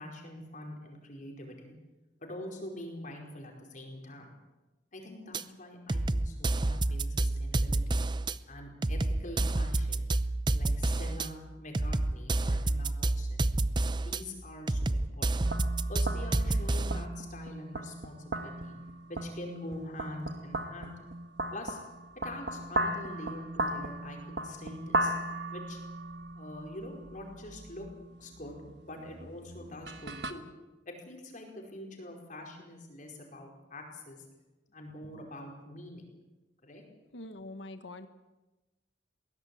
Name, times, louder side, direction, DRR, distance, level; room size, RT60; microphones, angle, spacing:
voice 1, 0.0-1.7 2.2-4.3 4.9-8.0 8.4-10.1 10.5-13.5 13.9-15.4 15.9-18.8 19.1-20.9 21.5-21.8 22.2-25.1 25.5-25.8 26.3-27.9 28.2-30.4 30.8-34.2 34.7-36.0 36.6-36.8, left 1 dB, 45° left, 2 dB, 5.0 m, -45 dB
sound 1, 5.3-5.4 5.9-8.3 8.8-11.3 11.7-14.2 14.7-17.1, right 2 dB, 25° right, 0.6 m, -29 dB
sound 2, 15.4-30.3, right 1 dB, 65° right, 1.4 m, -37 dB
voice 2, 37.1-38.1, left 2 dB, 85° left, 9 dB, 1.4 m, -44 dB
21.5 x 16.5 x 8.6 m, 1.1 s
head